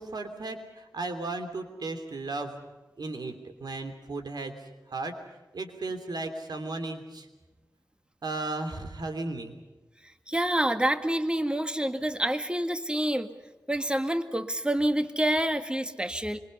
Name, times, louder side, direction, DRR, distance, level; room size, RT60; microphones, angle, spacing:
voice 1, 0.0-2.5 3.0-4.5 4.9-5.1 5.5-7.3 8.2-9.5, right 2 dB, 75° right, 6 dB, 3.2 m, -35 dB
voice 2, 10.3-13.3 13.7-16.4, right 1 dB, 15° right, 8 dB, 1.9 m, -27 dB
26.0 x 24.0 x 5.5 m, 1.1 s
wide cardioid pair, 60°, 7 cm